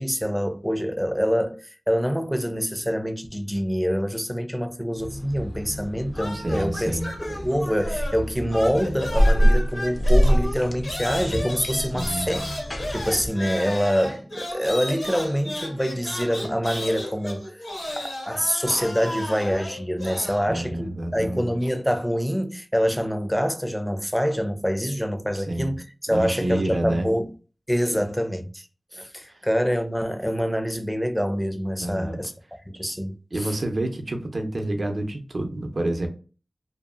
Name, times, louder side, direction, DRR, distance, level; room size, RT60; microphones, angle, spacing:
voice 1, 0.0-12.4 12.9-17.6 18.0-27.3 27.7-28.7 28.9-32.3 32.7-33.5, equal, ahead, 0.4 m, -26 dB
sound 1, 5.0-13.3, equal, 60° left, 0.5 m, -25 dB
sound 2, 6.1-8.2 8.5-20.5, left 1 dB, 90° left, 1.2 m, -34 dB
voice 2, 6.3-7.1 11.9-12.3 20.4-21.6 25.5-25.8 26.1-27.1 27.9-28.0 29.3-29.4 31.8-32.2 33.3-36.1, right 1 dB, 60° right, 0.6 m, -28 dB
2.6 x 2.3 x 2.4 m
wide cardioid pair, 55°, 0 cm